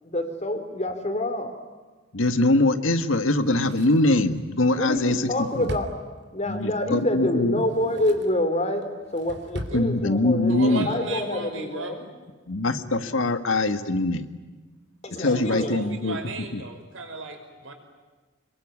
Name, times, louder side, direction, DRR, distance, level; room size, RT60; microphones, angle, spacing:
voice 1, 0.0-1.6 4.8-5.9 6.3-12.1 15.0-15.8, left 1 dB, 35° left, 7 dB, 3.8 m, -27 dB
voice 2, 2.1-5.3 5.5-5.7 6.5-7.6 9.7-10.9 12.5-14.2 15.2-16.2 16.5-16.6, left 2 dB, 85° left, 9 dB, 1.7 m, -22 dB
Drawer open or close, 3.3-6.6 7.5-8.4 8.8-9.8 10.1-10.2, equal, 60° right, 3.0 m, -40 dB
voice 3, 10.5-12.0 15.3-17.7, right 2 dB, 80° right, 5 dB, 5.7 m, -35 dB
26.5 x 22.5 x 9.7 m, 1.3 s
head